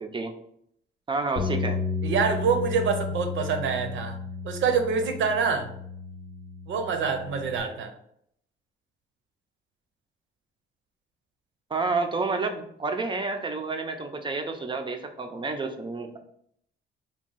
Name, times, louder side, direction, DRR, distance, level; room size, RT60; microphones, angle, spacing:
voice 1, 0.0-0.3 1.1-1.8 11.7-16.2, right 3 dB, 25° right, 5 dB, 0.6 m, -29 dB
sound 1, 1.4-7.6, left 3 dB, 60° left, 0.9 m, -33 dB
voice 2, 2.0-4.2 4.4-5.7 6.7-7.9, right 5 dB, 70° right, 5 dB, 0.7 m, -26 dB
3.5 x 2.3 x 3.9 m, 0.70 s
cardioid pair, 90°, 20 cm